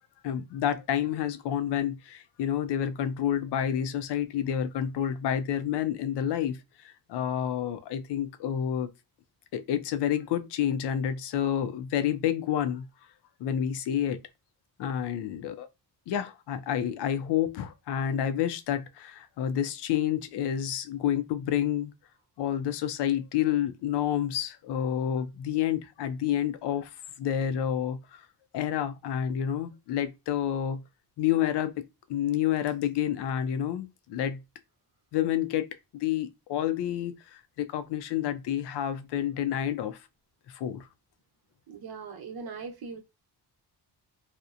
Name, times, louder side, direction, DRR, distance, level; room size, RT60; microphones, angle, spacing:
voice 1, 0.2-8.9 9.5-12.9 13.4-14.2 14.8-15.7 16.1-21.9 22.4-26.9 27.2-28.3 28.5-30.8 31.2-31.8 32.1-34.4 35.1-40.0 40.5-40.9, left 10 dB, 85° left, 0.5 m, -29 dB
voice 2, 41.7-43.0, right 5 dB, 65° right, 0.8 m, -40 dB
2.8 x 2.0 x 2.4 m
cardioid pair, 110°, 40 cm